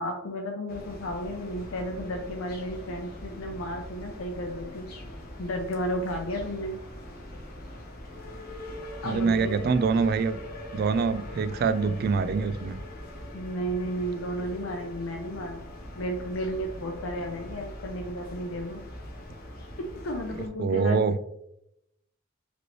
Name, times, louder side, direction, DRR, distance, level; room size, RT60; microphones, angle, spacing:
voice 1, 0.0-4.9 5.4-6.8 9.0-9.7 13.3-18.8 20.0-21.0, equal, 90° left, 1 dB, 0.6 m, -33 dB
sound 1, 0.7-20.5, left 1 dB, 50° left, 0.9 m, -42 dB
voice 2, 9.0-10.4 10.7-12.8 20.6-21.1, right 5 dB, 50° right, 13 dB, 0.3 m, -25 dB
5.1 x 3.1 x 3.0 m, 0.81 s
head